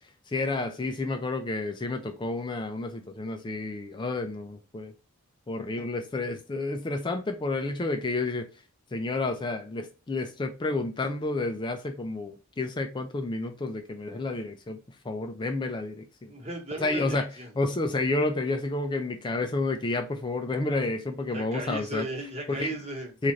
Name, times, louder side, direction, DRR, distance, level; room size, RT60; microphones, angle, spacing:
voice 1, 0.3-4.9 5.5-8.5 8.9-14.8 15.0-16.3 16.8-17.3 17.6-22.1 22.5-22.7 23.2-23.3, left 2 dB, 20° left, 0.3 m, -30 dB
voice 2, 16.2-17.5 21.3-23.1, right 1 dB, 30° right, 1.2 m, -36 dB
3.8 x 2.4 x 3.1 m
head